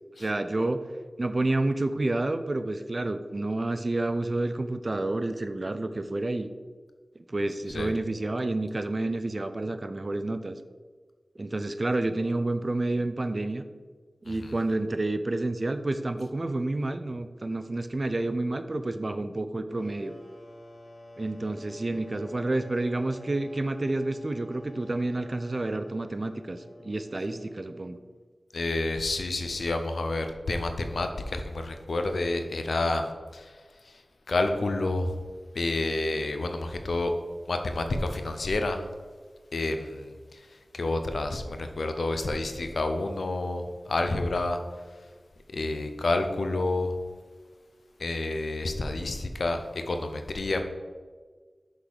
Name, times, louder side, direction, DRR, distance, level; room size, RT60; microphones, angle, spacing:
voice 1, 0.2-0.8 1.2-6.5 7.2-10.6 11.4-13.6 14.2-20.1 21.2-28.0, right 2 dB, 45° right, 10 dB, 0.5 m, -29 dB
sound 1, 19.7-28.2, left 1 dB, 60° left, 1.1 m, -49 dB
voice 2, 28.5-33.5 34.3-35.2 35.5-37.1 37.5-38.9 39.5-40.4 40.7-44.6 45.5-46.9 48.0-50.6, left 2 dB, 85° left, 6 dB, 0.7 m, -29 dB
6.3 x 3.9 x 6.3 m, 1.4 s
wide cardioid pair, 60°, 0 cm